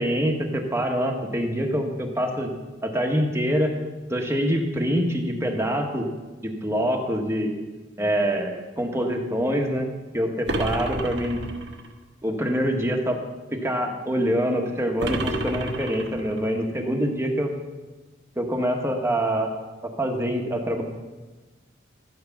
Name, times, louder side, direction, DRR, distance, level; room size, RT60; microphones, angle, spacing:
voice 1, 0.0-2.5 2.8-3.7 4.1-6.1 6.4-7.5 8.0-9.9 10.1-11.4 12.2-13.2 13.5-17.5 18.4-19.5 20.0-20.8, equal, 15° right, 3 dB, 1.4 m, -25 dB
sound 1, 10.5-11.9 15.0-16.5, right 2 dB, 60° right, 1.2 m, -30 dB
13.5 x 9.5 x 5.9 m, 1.2 s
head